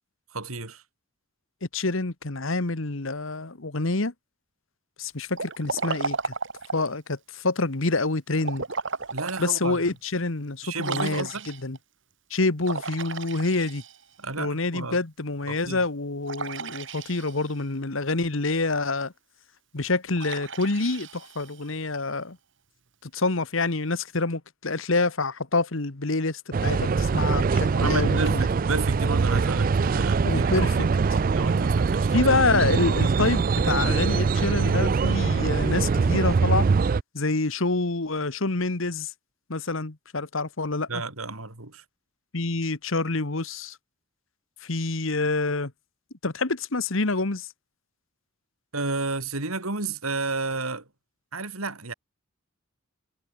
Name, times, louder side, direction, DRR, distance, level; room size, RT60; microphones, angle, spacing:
voice 1, 0.3-0.8 9.1-9.8 10.6-11.5 14.2-15.0 15.5-15.8 27.7-31.0 31.3-32.1 40.9-41.8 48.7-50.9 51.3-51.9, right 3 dB, 85° right, 4.2 m, -32 dB
voice 2, 1.7-4.1 5.0-6.3 6.7-8.6 9.4-11.8 12.3-13.8 14.4-19.1 19.7-22.4 23.0-28.4 30.2-30.7 32.1-36.6 37.1-39.1 39.5-40.9 42.3-43.8 44.6-45.7 46.2-47.5, left 3 dB, 70° left, 1.5 m, -27 dB
Liquid, 5.3-7.0 8.4-9.5 10.0-10.1 10.8-11.8 12.6-14.2 16.3-17.6 20.2-21.8, right 4 dB, 60° right, 2.0 m, -34 dB
sound 1, 26.5-37.0, right 4 dB, 40° right, 0.3 m, -23 dB
head